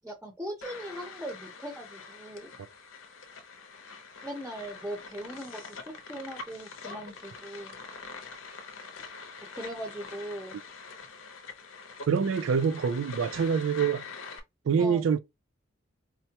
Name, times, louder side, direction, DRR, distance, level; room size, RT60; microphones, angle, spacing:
voice 1, 0.0-2.5 4.2-7.8 9.5-10.6 14.8-15.0, right 1 dB, 10° right, 0.6 m, -39 dB
sound 1, 0.6-14.4, left 4 dB, 85° left, 0.7 m, -45 dB
voice 2, 12.1-14.1 14.7-15.2, right 6 dB, 90° right, 0.4 m, -25 dB
4.4 x 2.1 x 2.8 m
head